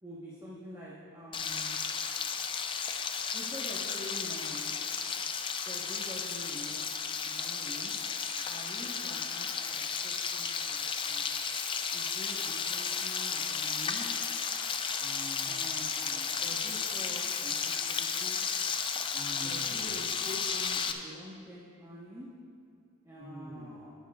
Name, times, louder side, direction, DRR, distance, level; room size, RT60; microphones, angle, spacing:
voice 1, 0.0-1.8 3.3-4.7 5.7-6.8 7.2-7.9 8.5-11.3 11.9-14.1 15.4-15.9 16.4-18.4 19.4-22.3 23.0-23.9, equal, 15° right, -7 dB, 1.1 m, -46 dB
Frying (food), 1.3-20.9, left 6 dB, 25° left, 0.3 m, -33 dB
voice 2, 15.0-15.7 16.0-16.4 19.1-19.9 23.1-23.8, equal, 30° right, -4 dB, 1.7 m, -47 dB
17.5 x 9.1 x 2.4 m, 2.2 s
head